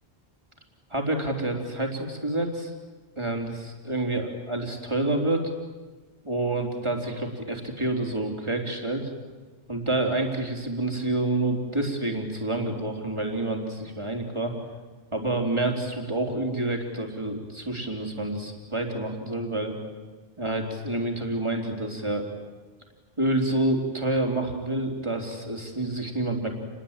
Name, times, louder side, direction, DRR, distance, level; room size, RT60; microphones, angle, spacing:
voice 1, 0.9-2.7 3.2-5.5 6.2-9.1 9.7-14.5 15.1-19.8 20.4-22.3 23.2-26.5, right 2 dB, 30° right, 2 dB, 3.9 m, -28 dB
29.5 x 21.5 x 9.1 m, 1.3 s
omnidirectional pair, 1.0 m